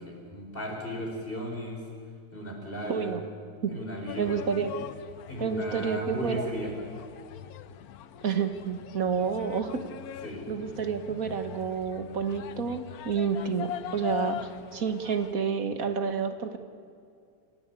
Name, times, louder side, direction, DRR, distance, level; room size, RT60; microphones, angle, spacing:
voice 1, 0.0-1.8 2.3-3.1 3.7-4.4 5.3-6.7 10.2-10.5, equal, 30° left, 0 dB, 5.1 m, -36 dB
voice 2, 2.9-3.2 3.6-3.7 4.2-4.7 5.4-6.5 8.2-9.8 10.5-16.6, right 6 dB, 55° right, 8 dB, 1.7 m, -29 dB
sound 1, 4.1-15.3, left 11 dB, 65° left, 1.1 m, -42 dB
28.0 x 16.0 x 8.4 m, 2.4 s
omnidirectional pair, 1.9 m